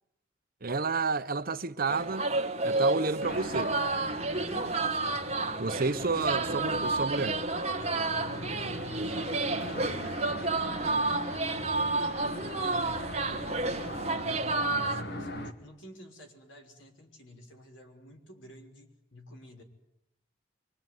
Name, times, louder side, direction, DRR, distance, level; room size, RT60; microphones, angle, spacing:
voice 1, 0.6-2.3 2.6-3.7 5.6-7.4, right 4 dB, 50° right, 1.0 m, -30 dB
sound 1, 1.9-15.0, right 3 dB, 35° right, 1.4 m, -31 dB
sound 2, 3.2-15.5, left 1 dB, 60° left, 2.3 m, -40 dB
voice 2, 8.9-9.5 10.0-10.9 12.4-13.2 13.8-14.2 14.7-19.6, equal, 80° left, 5.7 m, -51 dB
25.5 x 24.0 x 9.5 m
head